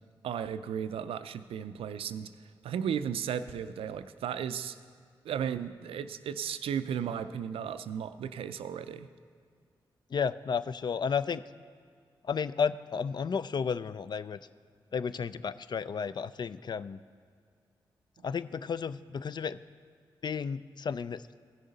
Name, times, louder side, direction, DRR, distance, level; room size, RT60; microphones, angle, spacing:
voice 1, 0.2-2.3 2.6-4.8 5.2-9.1, right 8 dB, 80° right, 12 dB, 0.4 m, -35 dB
voice 2, 10.1-11.4 12.2-14.4 14.9-17.0 18.2-19.6 20.2-21.4, left 6 dB, 50° left, 15 dB, 0.3 m, -32 dB
15.5 x 6.4 x 4.0 m, 2.2 s
supercardioid pair, 40°, 9 cm